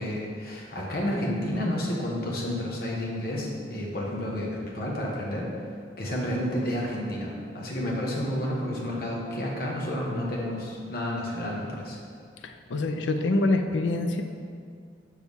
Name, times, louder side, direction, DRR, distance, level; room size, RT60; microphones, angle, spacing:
voice 1, 0.0-5.5 6.0-12.0, left 1 dB, 50° left, -3 dB, 1.3 m, -30 dB
voice 2, 12.4-14.2, left 2 dB, 80° left, 6 dB, 0.5 m, -25 dB
6.9 x 6.3 x 3.6 m, 2.2 s
head